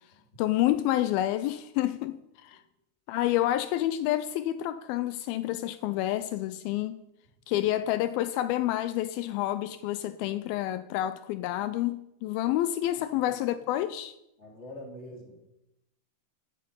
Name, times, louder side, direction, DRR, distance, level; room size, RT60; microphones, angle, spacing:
voice 1, 0.4-2.6 3.1-7.0 7.5-14.1, left 14 dB, 90° left, 2.1 m, -29 dB
voice 2, 12.9-13.3 14.4-15.4, left 1 dB, 20° left, 2.7 m, -45 dB
11.0 x 8.5 x 9.6 m
omnidirectional pair, 4.9 m